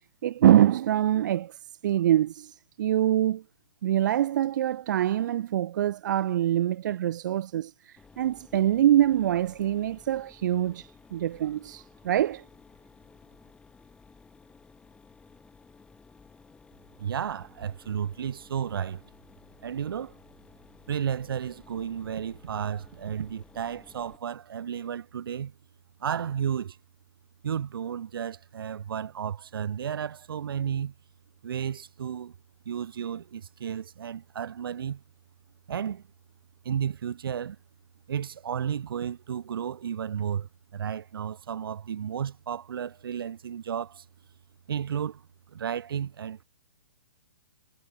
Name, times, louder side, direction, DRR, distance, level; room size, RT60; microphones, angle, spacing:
voice 1, 0.2-1.6 1.8-3.4 3.8-12.4, right 12 dB, 50° right, 0.4 m, -24 dB
Mechanisms, 8.0-24.2, left 4 dB, 10° left, 7.4 m, -55 dB
voice 2, 17.0-19.0 19.6-20.1 20.9-25.5 26.0-26.8 27.4-30.9 31.4-32.3 32.6-35.0 35.7-36.0 36.6-37.6 38.1-44.0 44.7-45.2 45.5-46.4, right 8 dB, 65° right, 1.7 m, -33 dB
hypercardioid pair, 145°, 13 cm